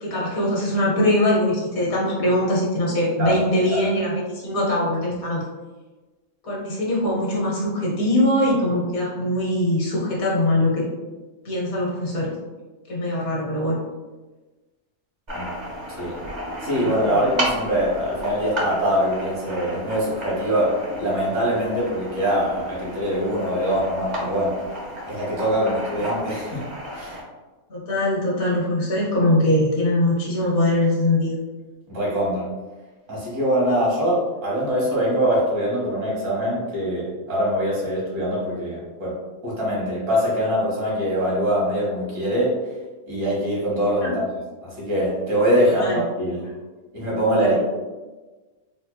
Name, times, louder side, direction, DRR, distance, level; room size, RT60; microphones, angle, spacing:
voice 1, 0.0-5.4 6.4-10.8 11.4-12.3 12.9-13.8 16.8-17.2 27.7-31.4 44.0-44.1 45.6-46.0 47.4-47.6, left 1 dB, 85° left, -5 dB, 1.6 m, -22 dB
sound 1, 15.3-27.2, equal, 40° right, 0.8 m, -33 dB
voice 2, 16.6-24.5 25.1-26.7 26.9-27.2 31.9-32.5 33.1-42.6 43.1-44.2 44.6-46.5 46.9-47.6, equal, 65° right, -6 dB, 1.7 m, -23 dB
4.2 x 2.8 x 2.2 m, 1.2 s
omnidirectional pair, 1.4 m